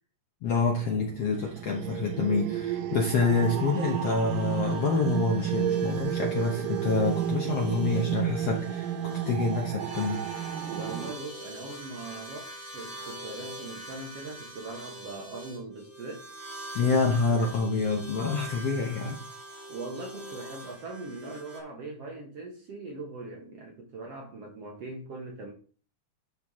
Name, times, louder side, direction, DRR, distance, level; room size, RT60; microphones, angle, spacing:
voice 1, 0.4-10.3 16.7-19.2, left 4 dB, 65° left, 1.6 m, -27 dB
sound 1, 0.9-11.1, right 9 dB, 75° right, 2.2 m, -31 dB
sound 2, 3.4-21.6, right 1 dB, 10° right, 1.4 m, -44 dB
voice 2, 10.5-16.3 16.8-16.9 19.7-25.5, right 2 dB, 60° right, 1.8 m, -41 dB
12.0 x 4.7 x 3.6 m
omnidirectional pair, 4.2 m